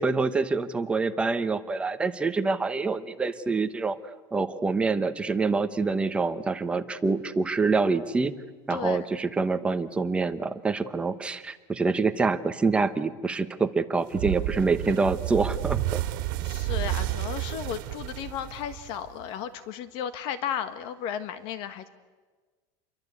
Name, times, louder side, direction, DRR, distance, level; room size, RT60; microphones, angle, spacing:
voice 1, 0.0-4.0 4.3-8.3 8.7-16.0, right 4 dB, 10° right, 9 dB, 1.0 m, -26 dB
voice 2, 8.7-9.1 16.4-21.9, left 9 dB, 50° left, 11 dB, 1.4 m, -34 dB
sound 1, 14.1-19.3, right 16 dB, 70° right, 2.3 m, -31 dB
29.0 x 23.0 x 8.3 m, 1.3 s
cardioid pair, 170°, 11 cm